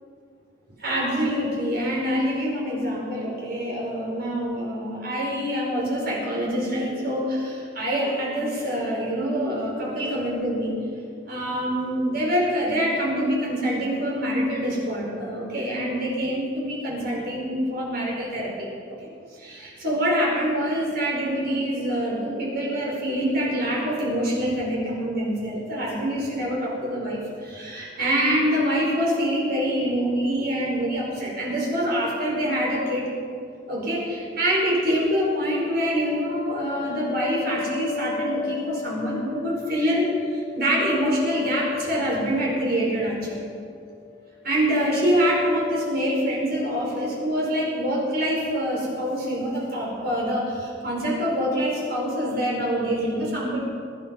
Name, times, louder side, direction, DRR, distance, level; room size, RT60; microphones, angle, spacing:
voice 1, 0.8-10.8 11.3-18.7 19.4-33.1 33.7-43.5 44.4-53.6, equal, 55° right, -3 dB, 5.1 m, -25 dB
sound 1, 35.5-43.6 43.9-44.4 44.8-46.5, left 6 dB, 30° left, 1.5 m, -34 dB
22.5 x 10.0 x 5.4 m, 2.3 s
head